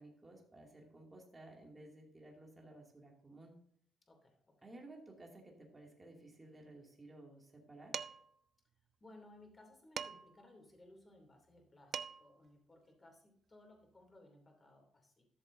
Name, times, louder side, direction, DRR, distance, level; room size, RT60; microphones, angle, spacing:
voice 1, 0.0-3.5 4.6-8.1, right 2 dB, 20° right, 0 dB, 2.4 m, -56 dB
voice 2, 4.1-4.7 9.0-15.3, left 1 dB, 25° left, 3 dB, 2.7 m, -61 dB
Dishes pots and pans, 7.9-8.4 10.0-10.4 11.6-11.7 11.9-12.4, right 7 dB, 55° right, 0.4 m, -43 dB
12.5 x 6.9 x 2.6 m, 0.65 s
cardioid pair, 90°, 0 cm